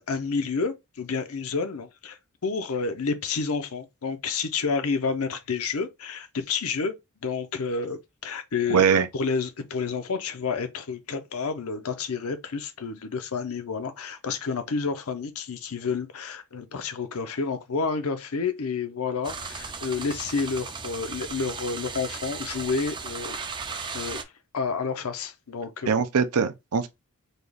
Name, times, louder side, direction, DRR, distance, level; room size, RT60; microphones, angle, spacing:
voice 1, 0.0-2.2 2.4-6.9 7.2-8.8 9.1-23.4 23.7-24.2 24.5-25.9, left 5 dB, 70° left, 0.7 m, -30 dB
voice 2, 8.7-9.1 25.9-26.9, right 6 dB, 85° right, 0.6 m, -22 dB
sound 1, 19.2-24.2, right 5 dB, 20° right, 0.4 m, -36 dB
4.1 x 2.4 x 3.4 m
head